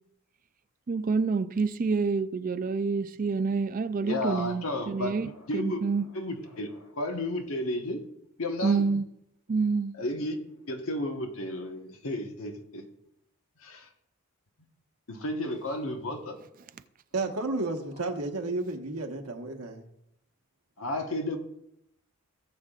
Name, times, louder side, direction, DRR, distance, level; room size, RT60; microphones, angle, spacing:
voice 1, 0.9-6.1 8.6-9.1 9.5-9.9, right 4 dB, 40° right, 0.4 m, -27 dB
voice 2, 4.0-5.8 6.1-8.0 8.4-8.8 10.0-10.4 10.6-12.8 13.6-13.9 15.1-16.4 20.8-21.4, left 1 dB, 70° left, 1.2 m, -33 dB
voice 3, 17.1-19.8, right 2 dB, 90° right, 1.3 m, -32 dB
17.5 x 7.3 x 2.4 m
head